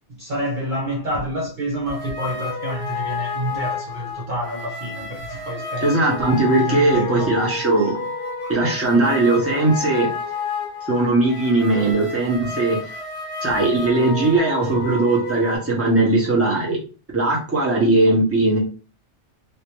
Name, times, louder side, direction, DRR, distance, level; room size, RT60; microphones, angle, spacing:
voice 1, 0.1-6.3 6.7-7.3 7.8-7.9 8.4-8.5 13.5-13.6, right 1 dB, 45° right, 0.9 m, -28 dB
sound 1, 1.8-15.6, left 4 dB, 50° left, 1.5 m, -30 dB
voice 2, 5.8-7.9 8.5-10.1 10.9-12.9 13.4-16.8 17.1-18.6, right 2 dB, 10° right, 1.2 m, -19 dB
3.3 x 2.9 x 3.1 m
omnidirectional pair, 1.3 m